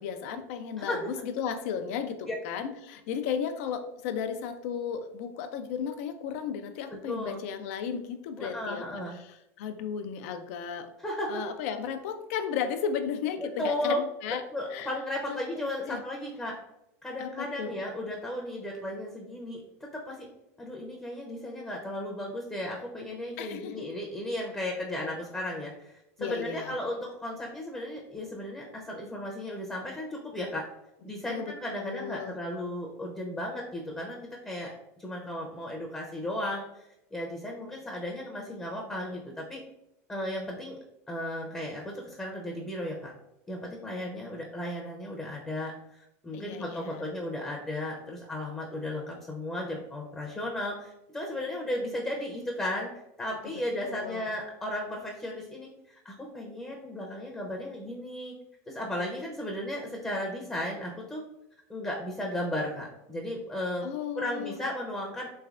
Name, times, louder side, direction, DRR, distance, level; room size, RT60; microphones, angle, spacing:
voice 1, 0.0-10.9 11.3-14.4 14.7-14.9 15.3-16.0 17.2-17.7 23.4-23.9 26.2-26.7 31.3-32.4 46.3-47.1 53.8-54.3 63.8-64.6, left 7 dB, 70° left, 9 dB, 0.4 m, -35 dB
voice 2, 0.8-1.1 2.3-2.4 6.9-7.4 8.4-9.1 11.0-11.4 13.6-14.0 14.5-16.5 17.0-20.3 20.6-30.7 31.0-34.2 34.4-34.7 35.0-39.6 40.1-40.8 41.1-43.1 43.5-52.9 53.2-58.4 58.7-61.2 61.7-63.9 64.1-65.3, left 1 dB, 10° left, -1 dB, 0.6 m, -35 dB
3.2 x 3.2 x 2.4 m, 0.86 s
supercardioid pair, 110°, 8 cm